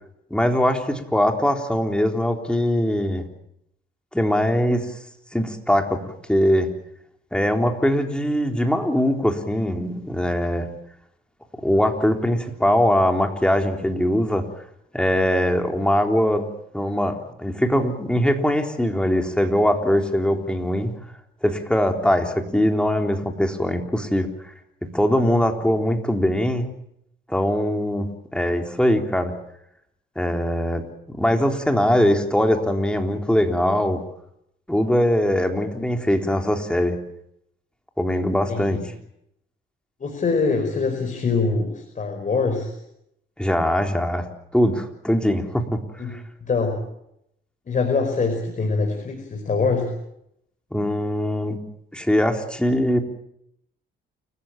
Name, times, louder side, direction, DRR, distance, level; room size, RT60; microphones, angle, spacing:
voice 1, 0.3-3.2 4.1-4.9 5.3-6.7 7.3-10.7 11.6-14.4 14.9-16.4 16.7-20.9 21.4-24.3 24.9-26.7 27.3-29.3 30.2-30.8 31.2-34.0 34.7-37.0 38.0-38.8 43.4-44.3 44.5-45.8 46.1-46.2 50.7-51.6 51.9-53.0, equal, 5° left, 4 dB, 3.8 m, -21 dB
voice 2, 38.5-38.8 40.0-42.8 46.0-46.1 46.4-46.8 47.7-49.9, left 4 dB, 40° left, 3 dB, 5.1 m, -24 dB
29.0 x 15.0 x 9.0 m, 0.78 s
cardioid pair, 90°, 20 cm